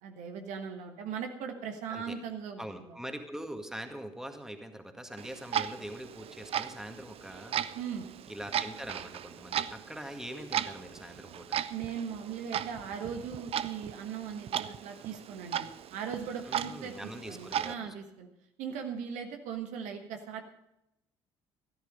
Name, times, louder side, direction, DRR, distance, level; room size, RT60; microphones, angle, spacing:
voice 1, 0.0-3.0 7.7-8.1 11.7-18.3 18.6-20.4, right 7 dB, 65° right, 5 dB, 1.4 m, -39 dB
voice 2, 2.6-7.6 8.3-11.6 16.5-17.9, equal, 5° right, 6 dB, 2.0 m, -43 dB
Clock, 5.2-17.7, right 10 dB, 45° right, 0.6 m, -37 dB
13.5 x 12.5 x 5.3 m, 0.85 s
figure-of-eight pair, 50°, 14 cm